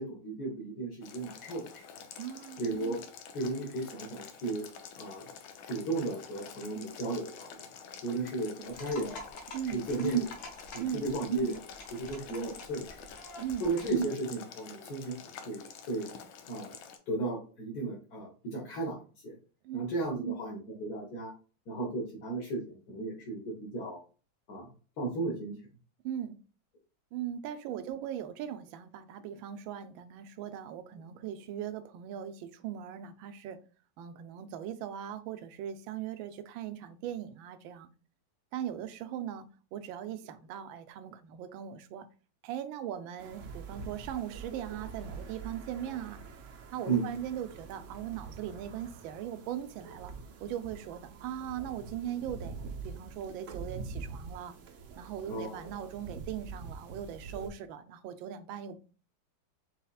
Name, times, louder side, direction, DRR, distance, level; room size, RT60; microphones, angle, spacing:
voice 1, 0.0-1.7 2.6-3.0 3.3-4.6 5.0-5.3 5.6-7.5 8.0-9.4 9.7-12.9 13.6-16.1 16.5-16.7 17.1-19.0 19.2-19.3 19.7-21.3 21.7-24.0 24.5-24.7 25.0-25.5 46.9-47.0 55.3-55.7, right 3 dB, 55° left, -4 dB, 1.6 m, -34 dB
Boiling, 1.0-17.0, left 7 dB, 90° left, 1.5 m, -49 dB
voice 2, 2.2-2.6 9.5-9.8 10.8-11.1 13.4-13.7 19.6-19.8 26.0-26.4 27.1-33.6 34.0-37.9 38.5-42.1 42.4-46.2 46.7-50.1 50.4-52.6 52.8-54.6 55.0-58.8, right 10 dB, 80° right, 10 dB, 1.4 m, -39 dB
sound 1, 8.7-14.0, left 2 dB, 75° left, 1.7 m, -48 dB
sound 2, 43.2-57.5, right 4 dB, 60° right, 0.8 m, -45 dB
5.5 x 4.0 x 2.3 m, 0.37 s
omnidirectional pair, 2.1 m